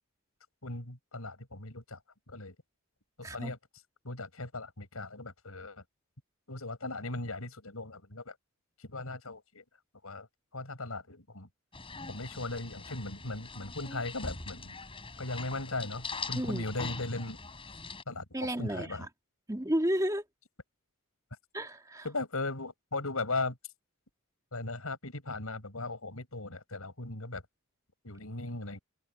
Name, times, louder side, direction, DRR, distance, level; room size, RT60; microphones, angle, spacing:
voice 1, 0.6-2.0 2.3-2.6 3.2-3.6 4.0-5.8 6.5-8.4 8.8-9.6 10.0-11.5 12.1-14.8 15.2-17.4 18.1-19.1 22.0-23.6 24.5-27.4 28.0-28.8, left 2 dB, 80° left, 5.4 m, -38 dB
sound 1, 11.7-18.0, left 4 dB, 25° left, 6.5 m, -42 dB
voice 2, 18.3-18.9 19.5-20.2 21.5-22.0, equal, 15° right, 2.1 m, -31 dB
head